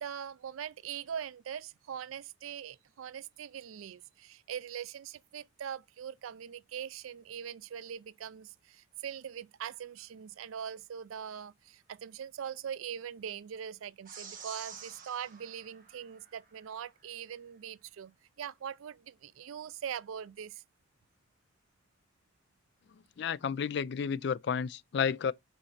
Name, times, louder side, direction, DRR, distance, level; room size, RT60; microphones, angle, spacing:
voice 1, 0.0-20.6, right 8 dB, 90° right, 0.4 m, -42 dB
sound 1, 14.1-16.7, right 6 dB, 40° right, 1.5 m, -49 dB
voice 2, 23.2-25.3, left 6 dB, 55° left, 0.3 m, -31 dB
5.7 x 4.0 x 5.7 m
head